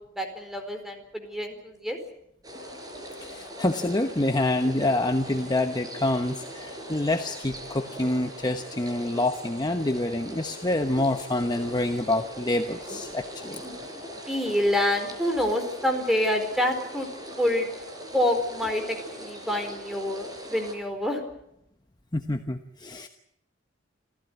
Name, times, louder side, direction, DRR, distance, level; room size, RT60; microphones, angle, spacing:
voice 1, 0.2-2.0 13.6-13.8 14.1-17.1 17.4-17.7 18.1-21.2, left 1 dB, ahead, 5 dB, 4.4 m, -27 dB
sound 1, 2.4-20.7, equal, 20° right, 5.1 m, -40 dB
voice 2, 3.2-13.6 22.1-23.1, left 2 dB, 20° left, 7 dB, 1.0 m, -27 dB
27.5 x 15.5 x 9.3 m, 0.79 s
head